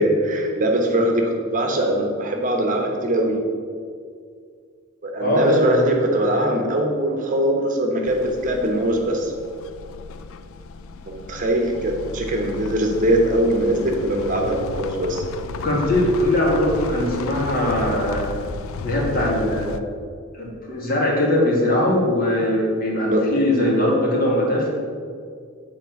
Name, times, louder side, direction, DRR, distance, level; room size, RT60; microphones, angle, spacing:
voice 1, 0.0-3.3 5.0-9.3 11.1-15.2 23.0-23.2, right 1 dB, 35° right, 1 dB, 1.1 m, -21 dB
voice 2, 5.2-5.9 15.6-18.3 18.8-19.8 20.3-24.7, left 1 dB, 40° left, -3 dB, 2.2 m, -21 dB
sound 1, 8.1-19.8, left 4 dB, 65° left, 0.4 m, -34 dB
8.9 x 4.5 x 7.1 m, 2.1 s
head